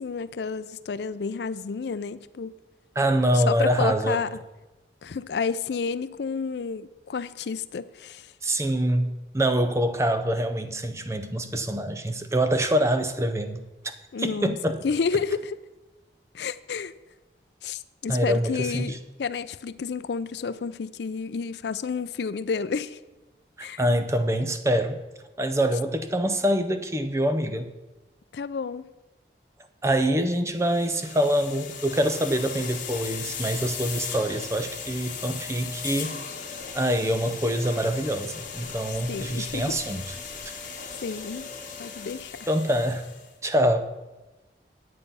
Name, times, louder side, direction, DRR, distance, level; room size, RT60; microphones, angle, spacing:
voice 1, 0.0-2.5 3.3-4.3 5.0-8.3 14.1-14.6 14.8-15.6 16.3-16.9 17.6-23.0 23.6-23.8 28.3-28.8 39.1-39.8 40.6-41.4 41.8-42.3, left 5 dB, 75° left, 15 dB, 0.4 m, -30 dB
voice 2, 3.0-4.2 8.4-14.8 18.1-19.0 23.8-25.0 25.4-27.7 29.8-36.2 36.7-40.1 42.5-43.0 43.4-43.9, equal, 15° right, 9 dB, 0.6 m, -25 dB
sound 1, 30.6-43.3, left 6 dB, 45° left, 1.8 m, -37 dB
9.1 x 8.4 x 5.5 m, 1.1 s
head